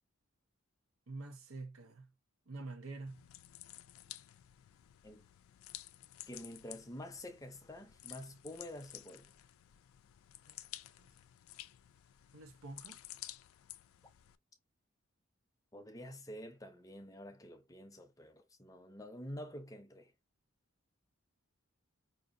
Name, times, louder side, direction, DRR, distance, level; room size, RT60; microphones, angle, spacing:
voice 1, 1.1-2.1 2.5-3.2 10.5-10.6 11.0-11.1 12.3-13.0, right 3 dB, 90° right, 0.7 m, -47 dB
sound 1, 3.1-14.4, left 14 dB, 80° left, 0.3 m, -53 dB
voice 2, 6.3-9.3 15.7-20.1, left 1 dB, 15° left, 0.5 m, -48 dB
5.1 x 2.6 x 2.6 m
head